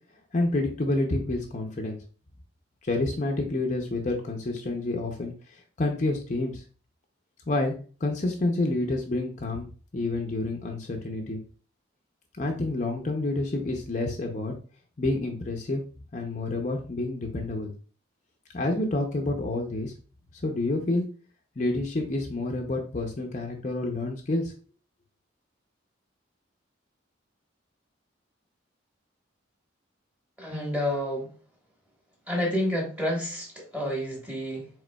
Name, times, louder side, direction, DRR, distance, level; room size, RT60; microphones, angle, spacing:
voice 1, 0.3-2.0 2.8-6.6 7.5-7.7 8.0-9.7 9.9-11.4 12.4-14.5 15.0-15.8 16.1-17.7 18.5-19.9 20.4-21.0 21.6-24.5, left 2 dB, 40° left, 2 dB, 0.5 m, -28 dB
voice 2, 30.4-31.3 32.3-34.7, left 1 dB, 10° right, -2 dB, 1.2 m, -29 dB
4.9 x 3.7 x 2.2 m, 0.38 s
head